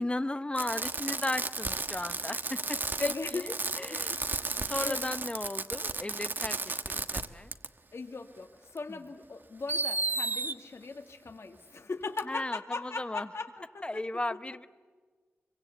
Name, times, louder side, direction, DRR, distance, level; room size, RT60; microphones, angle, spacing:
voice 1, 0.0-4.2 4.6-7.5 8.9-9.0 12.3-13.3 13.8-14.7, left 2 dB, 20° left, 13 dB, 0.9 m, -36 dB
Fireworks, 0.6-7.3 7.5-7.7 8.8-8.9 9.7-10.5 12.2-12.3, right 3 dB, 45° right, 1.2 m, -33 dB
voice 2, 3.0-3.6 3.9-5.1 7.9-14.0 14.5-14.7, left 3 dB, 70° left, 5 dB, 2.3 m, -39 dB
25.5 x 24.0 x 8.5 m, 1.4 s
wide cardioid pair, 85°, 5 cm